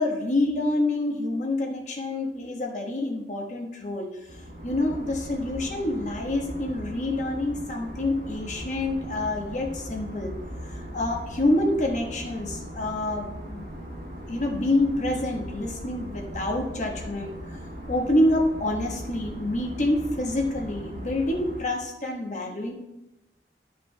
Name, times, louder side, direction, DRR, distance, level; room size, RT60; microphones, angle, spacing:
voice 1, 0.0-4.1 4.6-10.3 10.7-13.7 14.3-17.6 17.9-22.7, left 1 dB, 45° left, 1 dB, 1.3 m, -27 dB
sound 1, 4.3-21.6, equal, 55° right, 2.4 m, -39 dB
12.0 x 5.1 x 3.4 m, 0.94 s
head